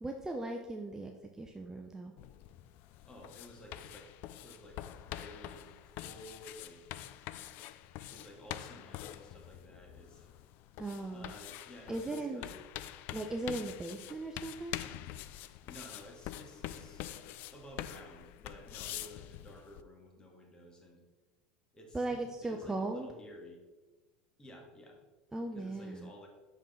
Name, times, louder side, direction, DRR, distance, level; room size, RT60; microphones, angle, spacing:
voice 1, 0.0-2.1 10.8-11.3 11.9-12.4 13.1-14.8 21.9-23.1 25.3-26.2, right 2 dB, 15° right, 3 dB, 0.6 m, -38 dB
sound 1, 2.2-19.8, left 13 dB, 55° left, 0.4 m, -46 dB
voice 2, 3.0-6.8 8.1-10.3 11.1-12.5 15.7-17.1 17.5-21.0 21.7-23.6 24.4-25.0 25.5-26.3, equal, 20° left, 0 dB, 1.8 m, -53 dB
6.3 x 5.4 x 3.8 m, 1.2 s
hypercardioid pair, 85°, 4 cm